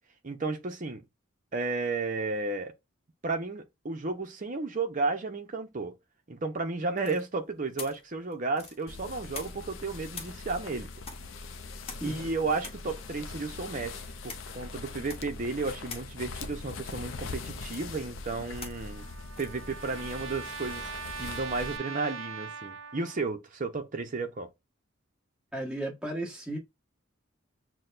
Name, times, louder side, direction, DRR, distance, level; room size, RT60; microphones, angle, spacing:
voice 1, 0.2-1.0 1.5-2.7 3.2-5.9 6.3-10.9 12.0-19.1 19.4-24.5, right 3 dB, 40° right, 0.7 m, -33 dB
sound 1, 7.0-9.8 10.1-21.1, left 5 dB, 30° left, 1.0 m, -48 dB
sound 2, 8.9-21.8, left 3 dB, 85° left, 0.5 m, -42 dB
Trumpet, 18.5-23.3, right 5 dB, 85° right, 0.5 m, -41 dB
voice 2, 25.5-26.6, right 1 dB, 5° right, 1.4 m, -34 dB
6.2 x 2.2 x 2.5 m
head